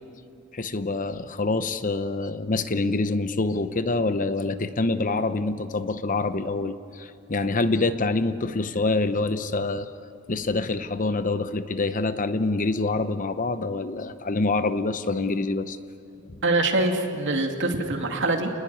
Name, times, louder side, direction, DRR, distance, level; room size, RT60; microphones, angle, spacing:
voice 1, 0.5-9.9 10.3-15.8, left 3 dB, 35° left, 11 dB, 0.8 m, -26 dB
voice 2, 16.4-18.5, right 2 dB, 55° right, 3 dB, 2.7 m, -24 dB
29.0 x 20.0 x 9.7 m, 2.5 s
head